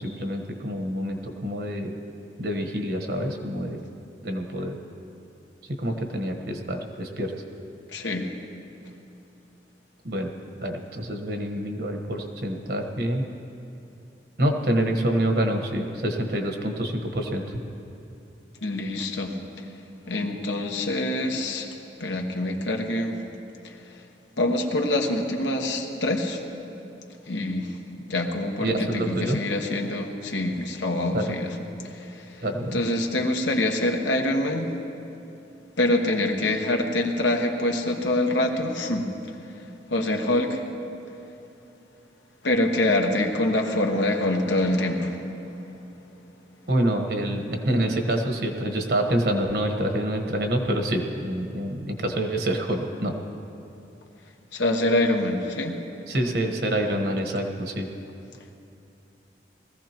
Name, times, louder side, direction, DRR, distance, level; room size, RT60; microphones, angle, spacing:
voice 1, 0.0-1.9 2.4-3.8 4.2-4.8 5.7-7.3 10.0-10.3 10.6-13.2 14.4-17.6 28.6-29.4 31.1-31.3 32.4-32.8 46.7-53.2 56.1-57.9, right 1 dB, 60° right, 4 dB, 1.3 m, -27 dB
voice 2, 7.9-8.3 18.6-19.6 20.1-21.7 22.0-23.2 23.6-23.8 24.4-26.4 27.3-27.8 28.0-31.5 31.8-32.4 32.7-34.7 35.8-39.1 39.4-40.6 42.4-45.3 54.5-55.8, left 1 dB, 90° left, 2 dB, 1.3 m, -25 dB
21.0 x 15.0 x 3.0 m, 2.8 s
head